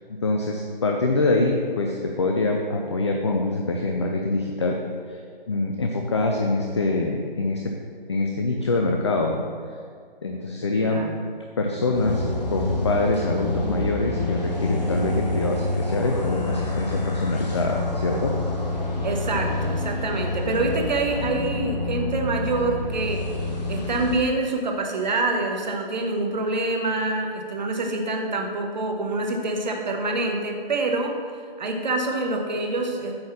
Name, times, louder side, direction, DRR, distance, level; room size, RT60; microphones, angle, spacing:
voice 1, 0.2-4.8 5.1-5.2 5.5-7.7 8.1-9.4 10.2-11.1 11.6-12.2 12.5-18.3, left 2 dB, 30° left, 1 dB, 0.5 m, -24 dB
voice 2, 10.8-11.2 19.0-23.3 23.7-31.1 31.6-33.1, right 2 dB, 50° right, 2 dB, 1.2 m, -26 dB
sound 1, 11.9-24.2, left 2 dB, 45° left, 1.4 m, -27 dB
8.6 x 4.1 x 6.0 m, 2.1 s
figure-of-eight pair, 145°, 29 cm